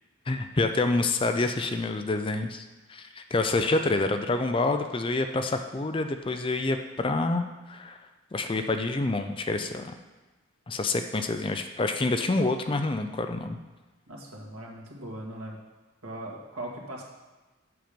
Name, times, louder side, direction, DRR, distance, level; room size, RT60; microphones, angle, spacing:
voice 1, 0.3-2.6 2.9-8.0 8.3-9.9 10.7-13.6, left 2 dB, 25° left, 7 dB, 0.4 m, -27 dB
voice 2, 14.1-15.6 16.0-17.0, right 1 dB, 90° right, -3 dB, 2.0 m, -39 dB
7.8 x 7.3 x 5.1 m, 1.2 s
head